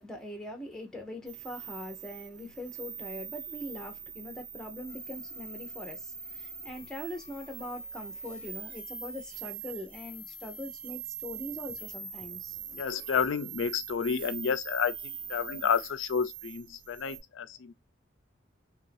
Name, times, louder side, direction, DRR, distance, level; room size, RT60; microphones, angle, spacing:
voice 1, 0.0-12.6, left 1 dB, 5° left, 0.6 m, -42 dB
sound 1, 1.3-17.2, right 6 dB, 45° right, 0.7 m, -43 dB
voice 2, 12.7-17.7, left 6 dB, 85° left, 0.4 m, -30 dB
2.8 x 2.5 x 3.2 m
head